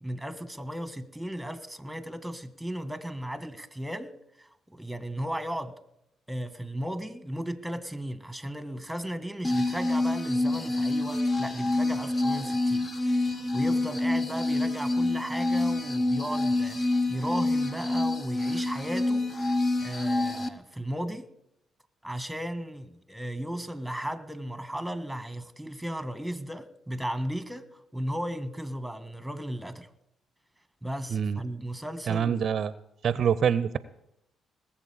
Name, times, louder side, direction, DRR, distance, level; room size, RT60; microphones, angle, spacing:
voice 1, 0.0-4.1 4.4-5.7 6.3-12.9 13.1-19.5 19.8-21.3 22.0-29.9 30.8-32.4, equal, ahead, 1.6 m, -35 dB
sound 1, 9.4-20.5, left 2 dB, 40° left, 1.3 m, -27 dB
voice 2, 32.1-32.7 33.0-33.8, right 8 dB, 55° right, 0.6 m, -25 dB
19.5 x 7.5 x 8.5 m
hypercardioid pair, 50°, 0 cm